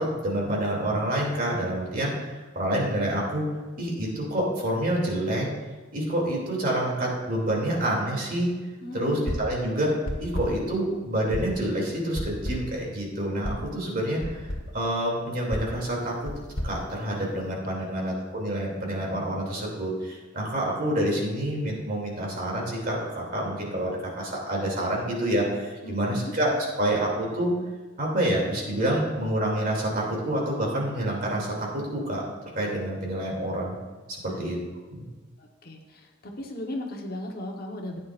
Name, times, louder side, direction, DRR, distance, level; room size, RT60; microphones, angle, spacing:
voice 1, 0.0-3.4 3.7-5.5 5.9-8.5 8.9-9.9 10.2-14.5 14.7-16.3 16.6-27.5 28.0-32.2 32.5-33.8 34.1-34.6 34.9-35.1, right 1 dB, 45° right, -2 dB, 2.9 m, -27 dB
voice 2, 8.8-9.4 17.7-18.1 25.8-26.3 34.3-34.6 35.4-36.1 36.4-38.0, left 1 dB, 50° left, 1 dB, 1.3 m, -36 dB
sound 1, 9.3-9.6 10.1-10.7 11.3-11.7 12.1-12.8 13.4-13.7 14.2-14.7 15.5-17.6, equal, 90° left, 1.4 m, -33 dB
15.0 x 9.3 x 2.6 m, 1.3 s
head